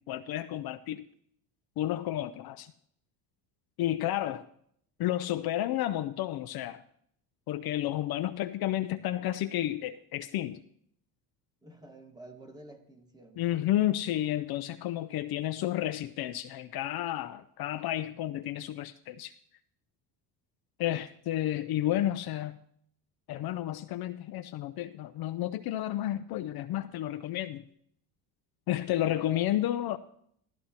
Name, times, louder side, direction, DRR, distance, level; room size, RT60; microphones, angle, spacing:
voice 1, 0.1-1.0 1.8-2.7 3.8-4.4 5.0-6.8 7.5-10.6 13.4-19.3 20.8-22.6 23.3-27.6 28.7-30.0, left 13 dB, 55° left, 0.6 m, -31 dB
voice 2, 11.6-13.4 29.0-29.7, right 1 dB, 10° right, 1.5 m, -48 dB
15.0 x 13.5 x 2.9 m
supercardioid pair, 90°, 46 cm